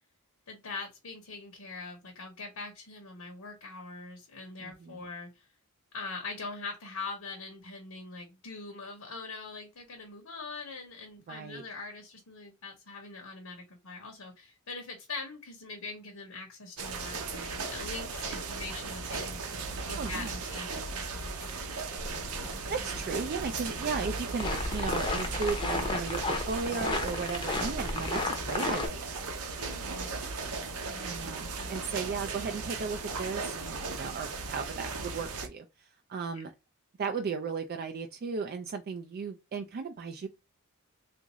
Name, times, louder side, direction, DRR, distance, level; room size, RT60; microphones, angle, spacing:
voice 1, 0.5-5.5 5.9-21.9 29.6-30.3 30.8-31.9 36.3-36.4, left 3 dB, 80° left, 0.9 m, -43 dB
voice 2, 4.6-5.0 11.3-11.6 20.0-20.3 22.7-29.1 31.0-36.5 37.0-40.3, right 5 dB, 45° right, 0.3 m, -36 dB
sound 1, 16.8-35.5, right 4 dB, 90° right, 0.8 m, -37 dB
sound 2, 22.0-28.9, left 3 dB, 20° left, 0.6 m, -34 dB
3.5 x 2.5 x 3.0 m
head